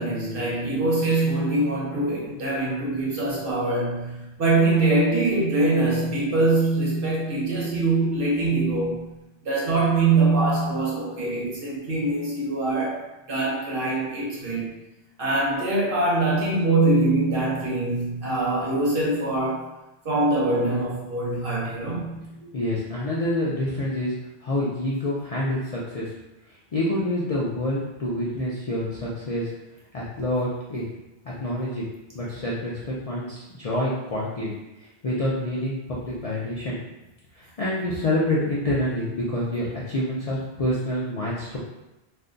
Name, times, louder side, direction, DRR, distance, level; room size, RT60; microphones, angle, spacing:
voice 1, 0.0-9.0 9.4-14.8 15.2-19.7 20.0-22.3, right 2 dB, 60° right, -5 dB, 1.0 m, -23 dB
voice 2, 22.4-24.1 24.4-26.1 26.7-29.5 29.9-30.8 31.2-31.8 32.1-34.5 34.8-36.8 37.4-41.6, left 1 dB, 50° left, -6 dB, 0.4 m, -27 dB
2.5 x 2.2 x 3.7 m, 0.97 s
omnidirectional pair, 1.1 m